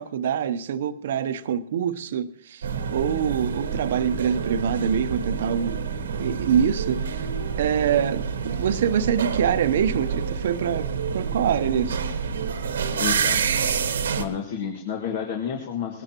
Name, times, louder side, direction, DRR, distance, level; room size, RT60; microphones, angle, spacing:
voice 1, 0.0-5.8 6.2-7.3 7.6-10.9 11.1-12.0, right 8 dB, 70° right, 12 dB, 0.8 m, -25 dB
sound 1, 2.6-14.2, right 6 dB, 90° right, 1.2 m, -28 dB
voice 2, 12.7-13.4 14.2-16.0, left 7 dB, 60° left, 2 dB, 1.8 m, -30 dB
20.5 x 13.0 x 3.0 m, 0.65 s
hypercardioid pair, 140°, 0 cm